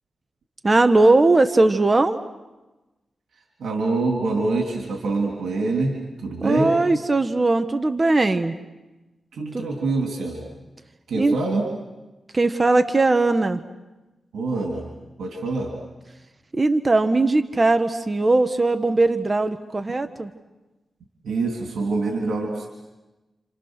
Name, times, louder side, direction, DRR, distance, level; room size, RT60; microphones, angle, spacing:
voice 1, 0.6-2.2 6.4-8.6 9.5-9.7 11.1-11.4 12.3-13.6 16.5-20.3, right 2 dB, 30° right, 9 dB, 1.2 m, -19 dB
voice 2, 3.6-6.8 9.3-10.4 11.1-11.7 14.3-14.9 15.2-15.7 21.2-22.7, right 3 dB, 85° right, 1 dB, 3.4 m, -25 dB
30.0 x 27.5 x 6.6 m, 1.1 s
cardioid pair, 70°, 0 cm